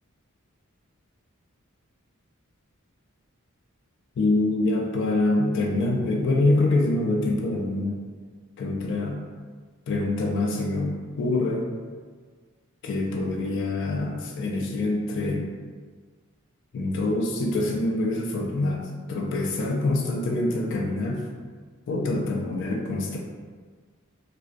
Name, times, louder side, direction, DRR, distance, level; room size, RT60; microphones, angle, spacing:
voice 1, 4.2-8.0 8.6-9.2 9.9-11.7 12.8-15.5 16.7-21.2 21.9-23.2, left 2 dB, 60° left, 0 dB, 0.3 m, -25 dB
2.3 x 2.2 x 2.4 m, 1.5 s
head